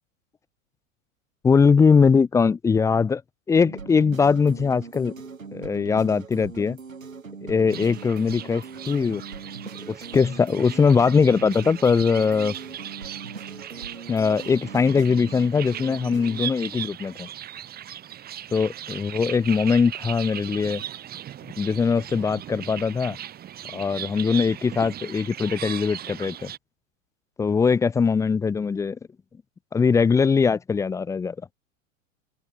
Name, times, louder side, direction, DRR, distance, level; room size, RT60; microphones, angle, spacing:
voice 1, 1.4-3.2 3.5-5.1 5.5-6.8 7.4-9.2 9.9-12.5 14.1-17.3 18.5-20.8 21.6-23.2 23.7-26.5 27.4-29.0 29.7-31.3, left 5 dB, 10° left, 0.5 m, -21 dB
sound 1, 3.6-16.5, right 5 dB, 85° right, 2.0 m, -40 dB
sound 2, 7.7-26.6, right 11 dB, 25° right, 1.3 m, -38 dB
figure-of-eight pair, 90°, 39 cm